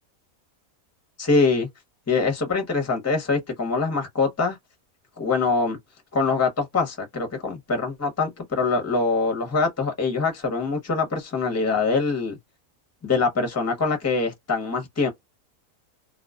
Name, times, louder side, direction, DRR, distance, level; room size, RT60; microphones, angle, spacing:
voice 1, 1.2-1.7 2.1-4.6 5.2-5.8 6.1-12.4 13.0-15.1, left 4 dB, 15° left, 0.6 m, -24 dB
2.4 x 2.3 x 2.3 m
omnidirectional pair, 1.5 m